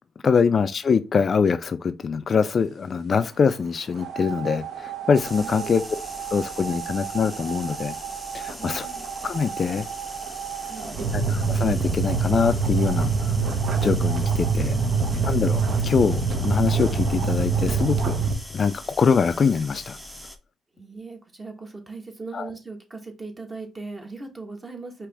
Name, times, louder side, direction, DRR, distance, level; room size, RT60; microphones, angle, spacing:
voice 1, 0.2-5.8 6.3-8.0 8.3-8.9 9.2-9.9 11.1-13.4 13.8-14.7 15.3-18.2 18.5-20.0 22.3-22.5, left 6 dB, 45° left, 0.3 m, -23 dB
sound 1, 3.9-18.3, right 4 dB, 60° right, 1.0 m, -26 dB
sound 2, 5.1-20.4, left 1 dB, 5° right, 0.7 m, -41 dB
voice 2, 5.4-5.7 8.6-9.1 10.7-11.2 14.6-15.3 20.7-25.1, right 3 dB, 25° right, 1.3 m, -39 dB
4.7 x 3.0 x 3.4 m
cardioid pair, 90°, 0 cm